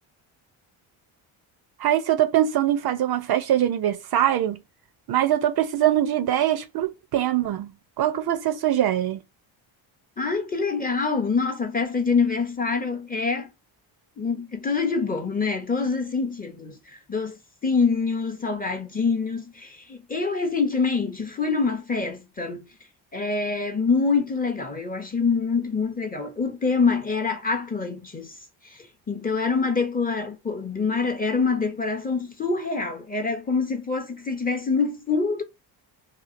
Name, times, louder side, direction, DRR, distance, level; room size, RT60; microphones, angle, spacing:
voice 1, 1.8-4.6 5.1-7.7 8.0-9.2, right 11 dB, 50° right, 0.5 m, -23 dB
voice 2, 10.2-13.5 14.2-22.7 23.1-28.3 28.6-35.4, left 4 dB, 20° left, 0.5 m, -25 dB
2.9 x 2.4 x 2.4 m
cardioid pair, 110°, 48 cm